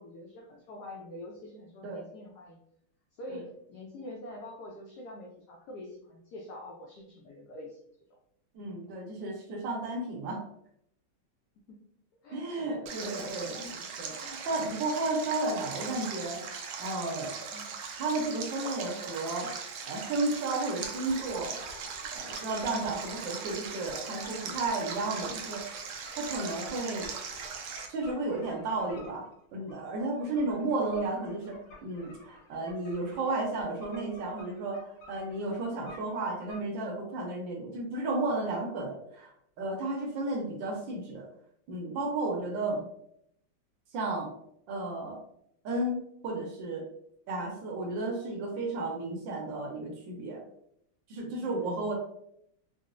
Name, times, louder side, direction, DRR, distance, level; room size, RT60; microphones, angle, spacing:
voice 1, 0.0-2.6 3.2-7.8 8.1-8.2 11.6-11.9 12.2-13.8 14.5-14.6 16.8-16.9 17.5-17.8 30.4-30.7 42.5-42.9 51.4-51.9, left 1 dB, 80° left, -1 dB, 0.9 m, -46 dB
voice 2, 8.5-10.4 12.3-13.7 14.0-17.3 17.9-19.5 19.9-21.6 22.1-25.6 26.2-27.1 27.9-39.3 39.6-41.3 41.7-42.8 43.9-44.3 44.7-45.2 45.6-46.8 47.3-50.4 51.1-51.9, right 2 dB, 75° right, 1 dB, 1.2 m, -33 dB
Stream, 12.9-27.9, right 6 dB, 90° right, 0.8 m, -40 dB
sound 1, 20.8-36.6, left 1 dB, 65° left, 1.5 m, -51 dB
3.9 x 2.0 x 2.4 m, 0.72 s
omnidirectional pair, 2.3 m